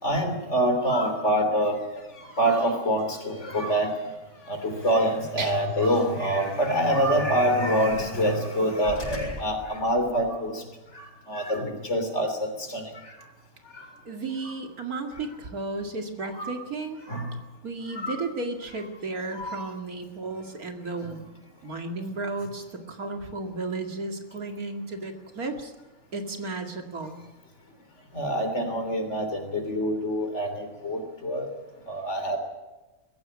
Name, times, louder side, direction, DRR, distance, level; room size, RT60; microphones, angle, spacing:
voice 1, 0.0-1.8 2.4-3.9 4.5-10.6 10.9-13.2 13.7-13.9 16.4-16.6 17.1-17.4 18.0-18.2 19.3-19.7 28.1-31.5 31.9-32.4, equal, 50° left, 6 dB, 3.5 m, -26 dB
sound 1, 1.6-10.4, left 1 dB, 65° left, 7.3 m, -45 dB
voice 2, 14.1-17.0 17.6-21.3 21.6-25.7 26.1-27.2, right 3 dB, 75° right, 4 dB, 2.8 m, -34 dB
21.5 x 16.0 x 9.8 m, 1.1 s
omnidirectional pair, 1.6 m